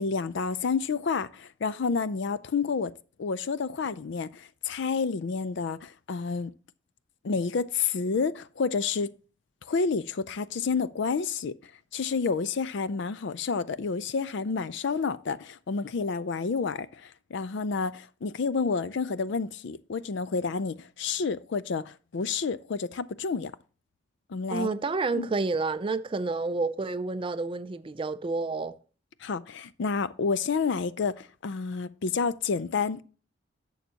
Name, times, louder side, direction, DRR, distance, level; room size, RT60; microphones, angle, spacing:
voice 1, 0.0-2.9 3.2-6.5 7.2-9.1 9.7-11.5 11.9-23.5 24.3-24.7 25.1-25.3 29.2-33.0, left 5 dB, 60° left, 0.4 m, -29 dB
voice 2, 24.5-28.7, right 3 dB, 25° right, 0.4 m, -29 dB
11.0 x 7.3 x 2.8 m
head